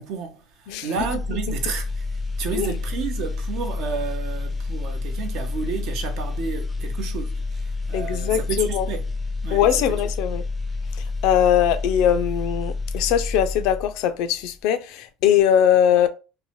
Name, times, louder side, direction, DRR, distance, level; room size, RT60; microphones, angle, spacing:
voice 1, 0.0-9.1 9.4-10.0, right 6 dB, 60° right, 0.7 m, -31 dB
sound 1, 0.9-14.1 14.4-14.6, left 3 dB, 5° left, 0.4 m, -29 dB
voice 2, 7.9-8.9 9.5-10.4 11.2-16.1, left 9 dB, 65° left, 0.4 m, -21 dB
2.7 x 2.1 x 3.0 m
supercardioid pair, 130°, 0 cm